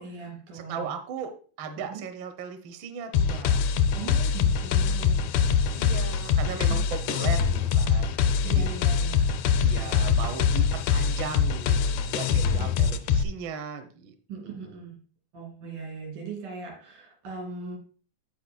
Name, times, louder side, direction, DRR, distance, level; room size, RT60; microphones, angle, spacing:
voice 1, 0.0-0.9 1.9-2.0 3.9-5.3 8.4-9.4 12.4-13.0 14.3-15.0 15.3-17.8, right 4 dB, 85° right, 0 dB, 4.4 m, -39 dB
voice 2, 0.5-3.6 5.7-8.7 9.6-10.6 10.9-14.1 14.4-14.8, right 6 dB, 65° right, 7 dB, 1.2 m, -37 dB
sound 1, 3.1-13.2, left 6 dB, 80° left, 1.5 m, -24 dB
15.0 x 5.3 x 2.3 m, 0.40 s
omnidirectional pair, 3.6 m